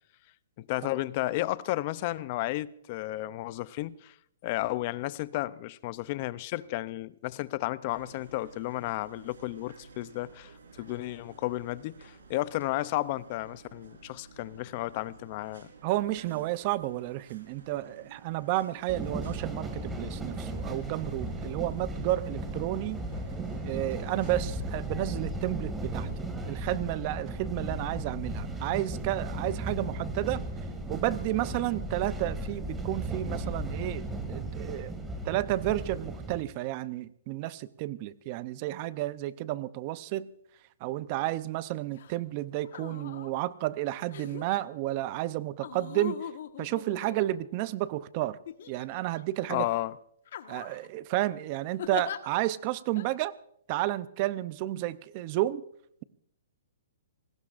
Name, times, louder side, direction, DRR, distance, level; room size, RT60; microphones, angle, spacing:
voice 1, 0.6-4.1 4.4-10.5 10.8-15.7 49.5-49.9, left 17 dB, 40° left, 0.5 m, -33 dB
sound 1, 7.9-24.6, right 4 dB, 80° right, 4.4 m, -53 dB
voice 2, 15.8-23.0 23.6-26.1 26.4-30.4 30.9-34.9 35.2-40.3 40.8-46.3 46.6-48.4 48.7-49.7 50.5-53.3 53.7-55.7, right 16 dB, 35° right, 0.6 m, -31 dB
sound 2, 18.9-36.4, right 1 dB, 10° right, 2.0 m, -36 dB
sound 3, 41.9-42.2 42.6-43.3 44.1-44.6 45.6-47.7 48.5-49.2 49.6-49.8 50.3-50.9 51.8-52.2 53.0-53.1, left 10 dB, 60° left, 1.3 m, -41 dB
26.0 x 19.0 x 2.5 m
hypercardioid pair, 150°, 0 cm